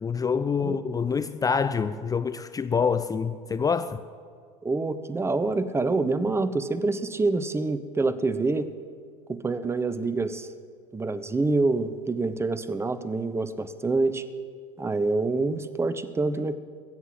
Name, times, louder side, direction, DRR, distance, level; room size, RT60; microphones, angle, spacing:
voice 1, 0.0-4.0, left 6 dB, 20° left, 0.5 m, -26 dB
voice 2, 4.6-8.7 9.3-10.5 10.9-14.2 14.8-16.5, right 3 dB, 15° right, 1.0 m, -26 dB
21.5 x 8.1 x 7.8 m
hypercardioid pair, 80°, 17 cm